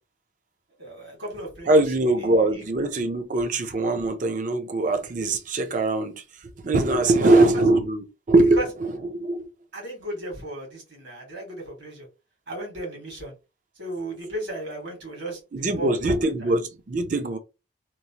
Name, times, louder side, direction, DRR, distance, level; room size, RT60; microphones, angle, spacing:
voice 1, 0.8-2.7 7.1-7.7 8.5-8.7 9.7-12.1 12.5-13.3 13.8-16.6, right 1 dB, 70° right, 1.6 m, -35 dB
voice 2, 1.7-6.2 6.6-8.6 9.1-9.4 15.5-17.4, right 2 dB, 40° right, 0.5 m, -22 dB
3.0 x 2.1 x 2.8 m
head